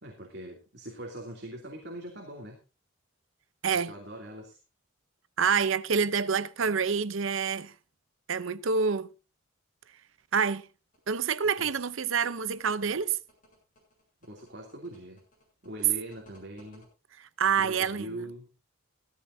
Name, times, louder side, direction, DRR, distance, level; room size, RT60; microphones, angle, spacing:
voice 1, 0.0-2.6 3.7-4.6 11.6-11.8 14.2-15.2 15.6-16.9 17.6-18.5, right 1 dB, 50° right, 2.9 m, -42 dB
voice 2, 5.4-7.7 8.3-9.1 10.3-10.7 11.1-13.2 17.4-18.1, right 6 dB, 75° right, 0.7 m, -27 dB
sound 1, 10.9-16.9, equal, 40° left, 7.5 m, -60 dB
16.5 x 14.5 x 2.7 m
head